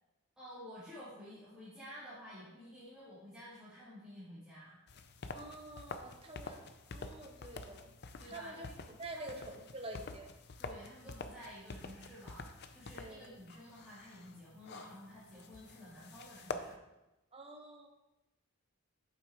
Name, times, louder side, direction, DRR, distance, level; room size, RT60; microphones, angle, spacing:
voice 1, 0.4-4.8 8.2-8.7 9.1-9.3 10.6-16.8, equal, 5° right, -15 dB, 3.1 m, -52 dB
sound 1, 4.9-16.8, left 3 dB, 50° left, 0.5 m, -48 dB
voice 2, 5.3-7.9 8.3-10.3 12.9-13.3 17.3-17.9, right 1 dB, 25° right, 3 dB, 0.9 m, -48 dB
8.3 x 8.2 x 3.1 m, 0.99 s
head